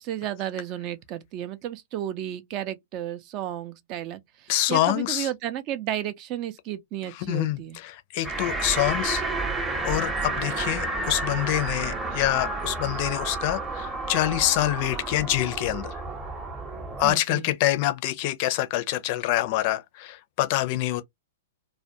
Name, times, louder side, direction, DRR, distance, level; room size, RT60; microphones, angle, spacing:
voice 1, 0.0-7.8 17.0-17.5, right 11 dB, 40° right, 0.5 m, -33 dB
voice 2, 4.5-5.3 7.1-9.3 9.8-16.0 17.0-21.0, left 15 dB, 50° left, 0.5 m, -26 dB
sound 1, 8.2-17.1, right 3 dB, 10° right, 0.8 m, -31 dB
2.3 x 2.1 x 2.7 m
hypercardioid pair, 115°, 0 cm